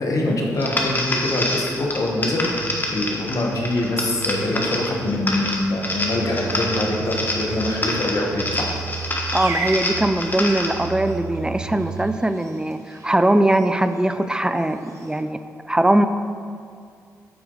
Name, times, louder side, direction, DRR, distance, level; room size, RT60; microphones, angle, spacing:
voice 1, 0.0-8.7, left 2 dB, 55° left, -1 dB, 1.4 m, -24 dB
sound 1, 0.6-10.9, left 1 dB, 25° left, 1.3 m, -27 dB
sound 2, 2.6-3.2 3.5-5.5 5.9-8.0 8.3-10.3 10.7-12.2, right 8 dB, 80° right, 0.5 m, -35 dB
sound 3, 4.3-15.2, right 2 dB, 45° right, 1.1 m, -39 dB
voice 2, 9.3-15.4 15.7-16.1, right 1 dB, 10° right, 9 dB, 0.5 m, -20 dB
8.6 x 4.6 x 3.9 m, 2.2 s
hypercardioid pair, 40°, 7 cm